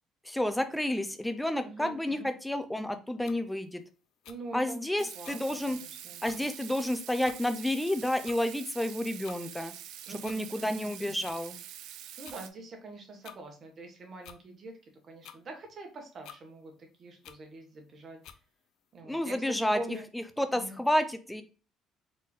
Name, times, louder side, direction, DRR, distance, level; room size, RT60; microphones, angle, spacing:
voice 1, 0.2-3.8 4.5-5.8 6.2-9.7 10.2-11.6 19.0-19.8 20.1-21.4, left 1 dB, 5° left, 9 dB, 0.4 m, -30 dB
voice 2, 1.6-2.3 4.3-6.5 10.1-10.8 12.2-14.8 15.0-18.2 18.9-20.0 20.5-20.8, right 2 dB, 35° right, 3 dB, 1.2 m, -44 dB
sound 1, 3.3-3.4 4.2-4.4 5.2-5.4 5.9-6.0 6.2-6.4 7.2-7.4 8.2-8.4 9.2-9.4 10.2-10.4 11.2-11.4 12.2-12.4 13.2-13.4 14.2-14.4 15.2-15.4 16.2-16.4 17.2-17.4 18.2-18.4, left 9 dB, 65° left, 0.4 m, -49 dB
Water tap faucet / Sink (filling or washing), 5.0-12.5, right 11 dB, 75° right, 0.4 m, -46 dB
4.2 x 3.7 x 2.4 m, 0.36 s
cardioid pair, 160°, 0 cm